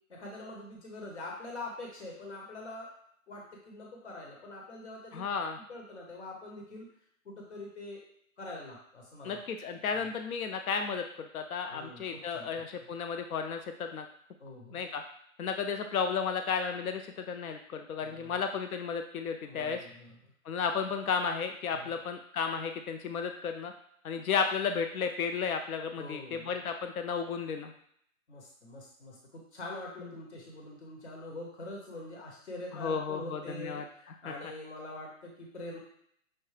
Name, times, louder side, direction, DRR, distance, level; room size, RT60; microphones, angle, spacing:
voice 1, 0.1-2.9 3.3-5.2 5.7-6.9 7.2-8.0 8.4-9.4 9.9-10.0 11.7-12.5 14.4-14.8 18.0-18.4 19.5-20.1 21.7-22.0 26.0-26.6 28.3-35.8, left 2 dB, 50° left, -1 dB, 1.0 m, -44 dB
voice 2, 5.1-5.6 9.2-14.1 14.7-15.0 15.4-19.8 20.5-23.7 24.0-27.7 32.7-34.3, left 6 dB, 75° left, 6 dB, 0.6 m, -33 dB
5.7 x 2.1 x 3.2 m, 0.69 s
hypercardioid pair, 175°, 43 cm